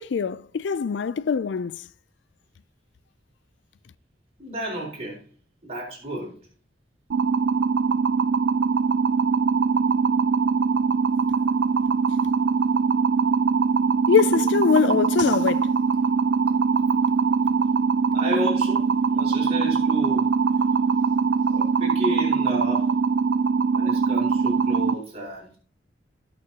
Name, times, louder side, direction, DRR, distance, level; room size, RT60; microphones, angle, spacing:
voice 1, 0.0-1.9 14.1-15.7, left 6 dB, 70° left, 0.4 m, -23 dB
voice 2, 4.4-5.2 5.6-6.4 18.1-20.3 21.5-22.9 23.7-25.6, right 1 dB, 35° right, 5.0 m, -31 dB
sound 1, 7.1-24.9, right 5 dB, 80° right, 0.4 m, -22 dB
17.0 x 6.4 x 2.9 m
head